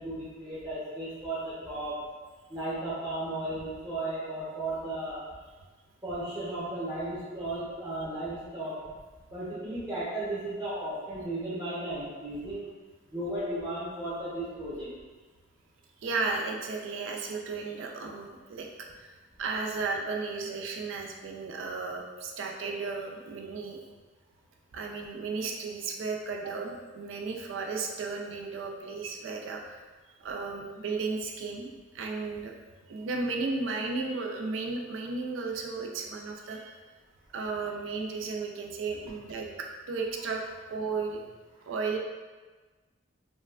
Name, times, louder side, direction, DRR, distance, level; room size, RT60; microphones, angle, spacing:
voice 1, 0.0-2.0 2.5-5.2 6.0-8.8 9.3-12.7 13.1-14.9, right 1 dB, 20° right, -11 dB, 0.6 m, -35 dB
voice 2, 16.0-18.7 19.0-19.1 19.4-23.8 24.7-29.8 30.2-32.5 32.9-36.7 37.3-41.2 41.7-42.0, right 4 dB, 90° right, 1 dB, 0.4 m, -34 dB
2.9 x 2.3 x 2.3 m, 1.3 s
head